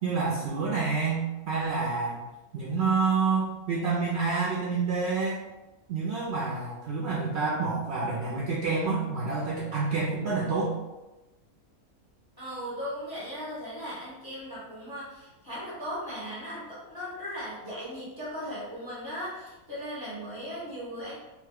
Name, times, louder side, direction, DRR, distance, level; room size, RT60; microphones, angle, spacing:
voice 1, 0.0-2.2 2.5-5.4 5.9-10.7, right 4 dB, 65° right, -5 dB, 0.7 m, -28 dB
voice 2, 12.4-21.3, equal, 20° left, -7 dB, 0.7 m, -37 dB
3.1 x 2.2 x 3.4 m, 1.0 s
omnidirectional pair, 1.6 m